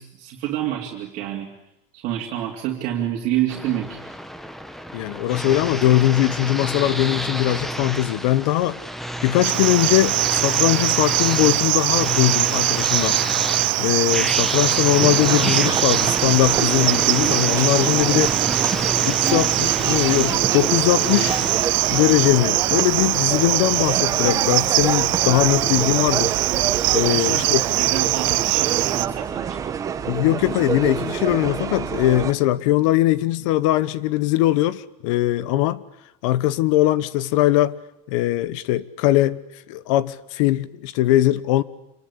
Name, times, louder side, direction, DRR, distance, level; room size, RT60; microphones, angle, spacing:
voice 1, 0.0-1.5 1.9-4.0 27.0-29.6, right 11 dB, 45° right, 3.2 m, -28 dB
sound 1, 3.5-22.3, right 1 dB, ahead, 1.1 m, -30 dB
voice 2, 4.9-8.8 9.2-13.2 13.8-18.3 19.0-21.5 21.9-26.3 26.9-27.6 30.1-35.8 36.2-37.8 38.1-39.4 39.7-41.6, left 15 dB, 65° left, 1.2 m, -20 dB
Cricket, 9.4-29.1, right 20 dB, 70° right, 0.9 m, -22 dB
sound 2, 15.0-32.3, right 7 dB, 20° right, 1.2 m, -27 dB
27.5 x 22.5 x 8.5 m
cardioid pair, 170°, 17 cm